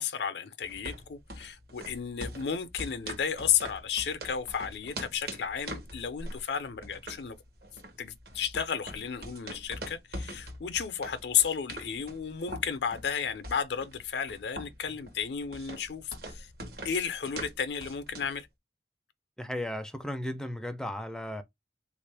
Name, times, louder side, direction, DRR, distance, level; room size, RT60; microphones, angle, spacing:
voice 1, 0.0-7.4 8.0-16.5 16.8-18.5, left 7 dB, 70° left, 0.5 m, -33 dB
sound 1, 0.6-18.4, right 1 dB, 60° right, 0.9 m, -43 dB
voice 2, 19.4-21.4, left 1 dB, 5° left, 0.4 m, -35 dB
3.6 x 2.5 x 3.3 m
head